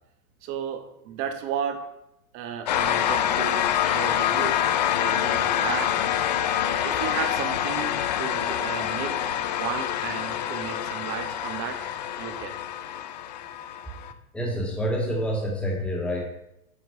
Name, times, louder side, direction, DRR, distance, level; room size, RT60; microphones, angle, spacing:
voice 1, 0.4-1.9 2.3-4.6 5.0-5.9 6.8-11.8 12.2-12.6, right 8 dB, 30° right, 7 dB, 1.1 m, -34 dB
sound 1, 2.7-14.1, left 10 dB, 30° left, 0.4 m, -26 dB
voice 2, 14.3-16.2, equal, 5° left, -1 dB, 1.9 m, -27 dB
8.6 x 4.5 x 6.6 m, 0.81 s
hypercardioid pair, 140°, 43 cm